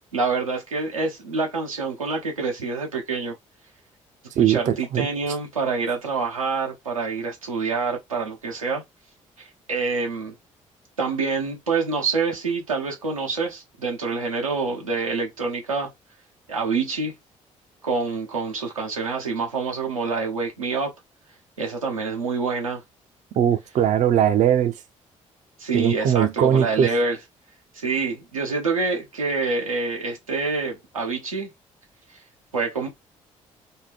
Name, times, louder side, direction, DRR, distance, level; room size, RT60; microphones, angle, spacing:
voice 1, 0.1-3.3 4.4-8.8 9.4-10.3 11.0-15.9 16.5-17.1 17.8-20.9 21.6-22.8 25.6-27.2 27.7-31.5 32.5-32.9, right 4 dB, 85° right, 0.7 m, -26 dB
voice 2, 4.3-5.1 23.3-24.8 25.7-26.9, right 9 dB, 45° right, 0.5 m, -20 dB
4.3 x 2.2 x 3.3 m
figure-of-eight pair, 45°, 17 cm